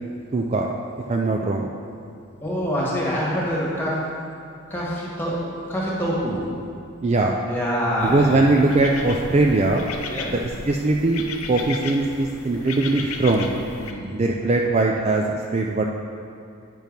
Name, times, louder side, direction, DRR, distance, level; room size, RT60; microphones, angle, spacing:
voice 1, 0.3-0.7 1.1-1.7 7.0-7.3 8.0-9.9 10.7-13.5 14.1-15.8, right 2 dB, 30° right, 1 dB, 0.3 m, -20 dB
voice 2, 2.4-4.0 4.7-6.4 7.5-8.5 10.1-10.3 13.7-14.1, equal, 10° left, -6 dB, 1.5 m, -25 dB
sound 1, 8.0-13.9, left 4 dB, 85° left, 0.6 m, -35 dB
9.1 x 4.6 x 5.2 m, 2.5 s
head